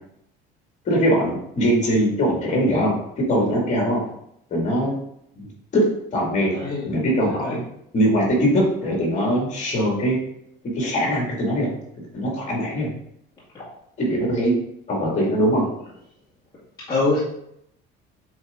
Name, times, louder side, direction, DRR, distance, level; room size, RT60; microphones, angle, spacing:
voice 1, 0.9-4.0 4.5-4.9 5.4-6.6 6.8-7.6 7.9-10.2 10.7-11.7 12.1-12.9 14.0-14.6 14.9-15.7, equal, 35° left, -2 dB, 2.2 m, -21 dB
voice 2, 6.5-6.9 7.4-7.5 13.5-13.6 16.9-17.2, left 3 dB, 15° left, -9 dB, 1.8 m, -23 dB
7.5 x 4.0 x 3.6 m, 0.75 s
cardioid pair, 165°, 21 cm